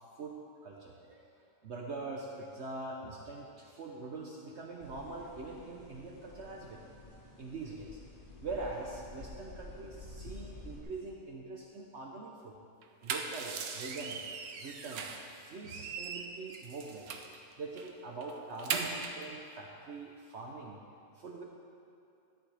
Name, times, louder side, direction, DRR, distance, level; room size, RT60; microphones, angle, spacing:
voice 1, 0.6-6.8 7.4-8.0 8.4-12.5 13.0-14.2 14.5-17.2 17.6-20.8 21.1-21.4, right 3 dB, 55° right, -1 dB, 1.0 m, -43 dB
sound 1, 4.8-10.8, left 2 dB, 40° left, 1.2 m, -50 dB
sound 2, 12.8-15.3 15.6-17.4 17.8-17.9 18.2-19.3, right 5 dB, 85° right, 1.3 m, -39 dB
13.5 x 10.5 x 3.4 m, 2.5 s
omnidirectional pair, 1.5 m